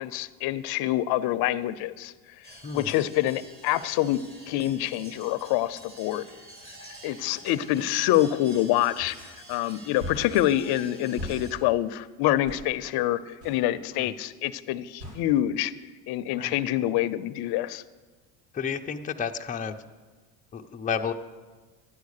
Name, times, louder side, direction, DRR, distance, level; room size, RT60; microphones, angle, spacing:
voice 1, 0.0-2.1 2.7-4.2 4.5-6.2 7.0-9.2 9.5-13.2 13.4-15.7 16.1-17.8, left 14 dB, 55° left, 14 dB, 0.7 m, -26 dB
sound 1, 2.4-11.5, right 1 dB, 20° right, 3.2 m, -48 dB
sound 2, 9.0-9.1 10.0-10.3 11.2-11.4 12.4-12.7 13.4-13.6 15.0-15.2, equal, 65° right, 4.6 m, -37 dB
voice 2, 18.5-19.8 20.5-21.1, left 6 dB, 15° left, 4 dB, 0.6 m, -31 dB
11.0 x 9.4 x 6.6 m, 1.3 s
supercardioid pair, 100°, 46 cm